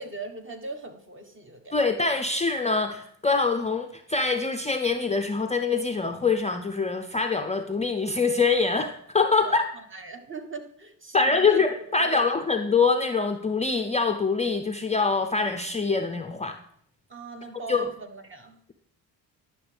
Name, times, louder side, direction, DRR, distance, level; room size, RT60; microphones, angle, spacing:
voice 1, 0.0-1.8 9.4-11.6 12.0-12.4 17.1-18.6, right 3 dB, 25° right, 5 dB, 1.3 m, -40 dB
voice 2, 1.7-9.6 11.1-16.6 17.7-17.9, left 4 dB, 15° left, 6 dB, 0.5 m, -24 dB
10.5 x 6.1 x 3.4 m, 0.66 s
supercardioid pair, 65°, 44 cm